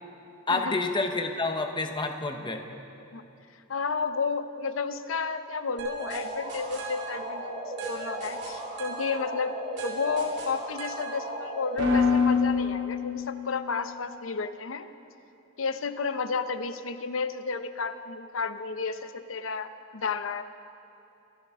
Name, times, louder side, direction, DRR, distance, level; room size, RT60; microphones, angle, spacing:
voice 1, 0.5-2.6, left 3 dB, 25° left, 5 dB, 0.9 m, -28 dB
voice 2, 3.7-9.5 9.8-14.9 15.6-20.4, left 5 dB, 75° left, 11 dB, 0.7 m, -32 dB
sound 1, 5.8-13.6, left 3 dB, 60° right, 3.0 m, -30 dB
26.5 x 12.0 x 3.7 m, 2.8 s
head